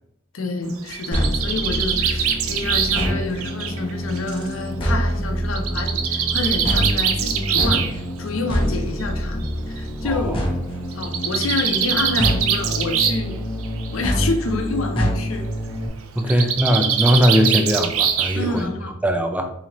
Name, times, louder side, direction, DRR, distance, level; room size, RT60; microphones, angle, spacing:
voice 1, 0.3-10.4 10.9-13.4 13.9-15.5 16.2-16.5 18.3-18.9, left 3 dB, 70° left, 4 dB, 0.6 m, -28 dB
Bird, 0.7-4.5 5.6-7.9 9.0-9.1 9.4-9.5 9.8-9.9 10.9-13.3 13.6-14.1 16.2-18.6, right 8 dB, 85° right, 0.4 m, -23 dB
sound 1, 1.1-15.9, equal, 25° left, 0.9 m, -26 dB
voice 2, 10.0-10.4 16.2-18.7 19.0-19.5, equal, 5° right, 5 dB, 0.3 m, -19 dB
4.2 x 2.8 x 2.9 m, 0.83 s
head